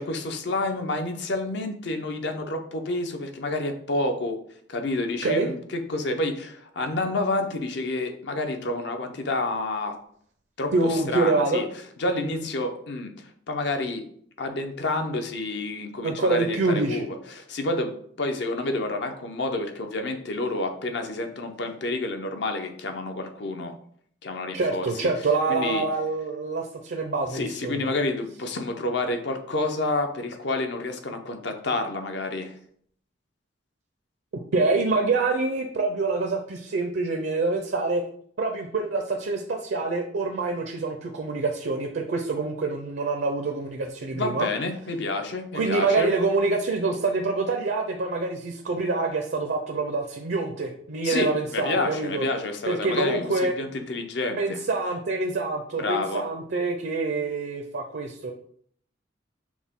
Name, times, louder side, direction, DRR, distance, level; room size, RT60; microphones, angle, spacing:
voice 1, 0.0-4.4 4.7-10.0 10.6-11.7 12.0-14.0 14.4-23.7 24.2-24.9 25.5-25.8 27.3-32.5 44.1-46.1 51.0-54.6 55.8-56.2, left 2 dB, 65° left, 6 dB, 0.6 m, -29 dB
voice 2, 10.7-11.6 12.2-12.4 16.0-17.1 24.5-27.9 34.5-38.0 38.4-44.5 45.5-52.2 52.7-53.5 54.4-58.3, right 3 dB, 65° right, 3 dB, 0.5 m, -26 dB
6.0 x 2.2 x 3.6 m, 0.62 s
head